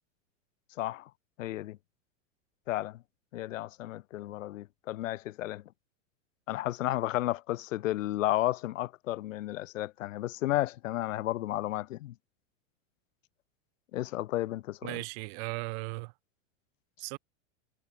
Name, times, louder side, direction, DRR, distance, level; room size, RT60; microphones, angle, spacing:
voice 1, 0.8-1.1 1.4-1.8 2.7-3.0 3.3-5.6 6.5-12.1 13.9-15.0, left 15 dB, 80° left, 1.3 m, -32 dB
voice 2, 14.8-16.1 17.0-17.2, right 29 dB, 55° right, 1.0 m, -37 dB
hypercardioid pair, 110°, 38 cm